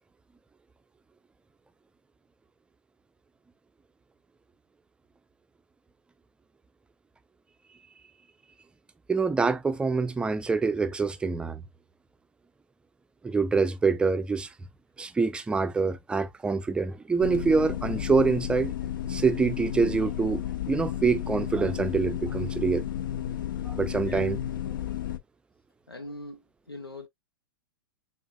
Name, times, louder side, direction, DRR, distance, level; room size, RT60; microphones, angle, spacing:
voice 1, 9.1-11.6 13.2-14.5 15.0-18.7 19.1-22.8 23.7-24.4, right 4 dB, 10° right, 0.5 m, -25 dB
sound 1, 17.2-25.2, left 10 dB, 60° left, 0.6 m, -32 dB
voice 2, 23.9-24.3 25.9-27.1, left 1 dB, 85° left, 1.2 m, -42 dB
7.1 x 2.5 x 2.2 m
figure-of-eight pair, 100°, 12 cm